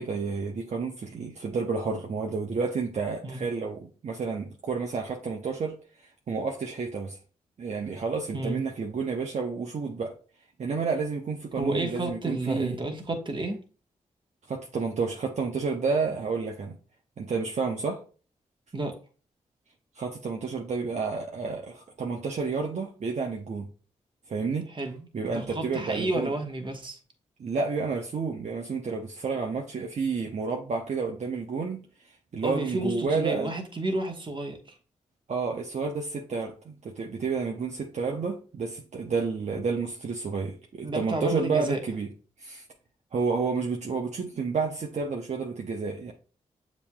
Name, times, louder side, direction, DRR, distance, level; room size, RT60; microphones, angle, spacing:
voice 1, 0.0-5.7 6.3-7.2 7.6-10.2 10.6-12.8 14.5-16.8 17.2-18.0 20.0-23.7 24.3-24.7 25.1-26.3 27.4-31.8 32.3-33.5 35.3-42.1 42.4-42.6 43.1-46.1, right 4 dB, 55° right, 0.7 m, -30 dB
voice 2, 11.6-13.6 18.7-19.0 24.7-27.0 32.4-34.8 40.8-41.8, right 2 dB, 35° right, 1.2 m, -31 dB
6.9 x 3.0 x 2.2 m
supercardioid pair, 50°, 14 cm